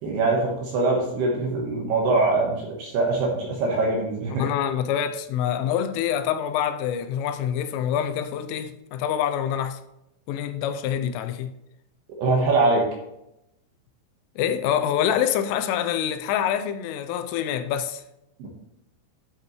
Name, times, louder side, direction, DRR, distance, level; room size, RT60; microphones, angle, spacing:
voice 1, 0.0-4.4 12.2-12.9 18.4-18.5, right 3 dB, 70° right, 2.7 m, -23 dB
voice 2, 4.3-9.8 10.3-11.5 14.4-18.0, left 9 dB, 85° left, 3.0 m, -26 dB
10.5 x 7.6 x 3.1 m
omnidirectional pair, 5.9 m